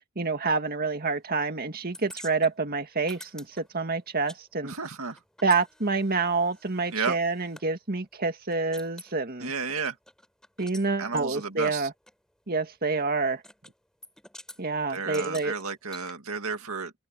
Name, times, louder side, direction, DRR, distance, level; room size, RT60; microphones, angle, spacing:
voice 1, 0.2-4.7 5.4-9.5 10.6-11.9 12.5-13.4 14.6-15.5, right 4 dB, 45° right, 2.0 m, -27 dB
sound 1, 1.9-4.4 4.7-7.7 8.1-8.2 8.5-9.1 9.6-10.9 11.2-11.3 12.1-12.2 13.4-13.7 14.0-14.6 15.1-16.1, left 1 dB, 5° left, 6.6 m, -48 dB
voice 2, 4.6-5.2 6.9-7.2 9.4-10.0 11.0-11.9 14.9-16.9, right 5 dB, 70° right, 2.4 m, -32 dB
open air
head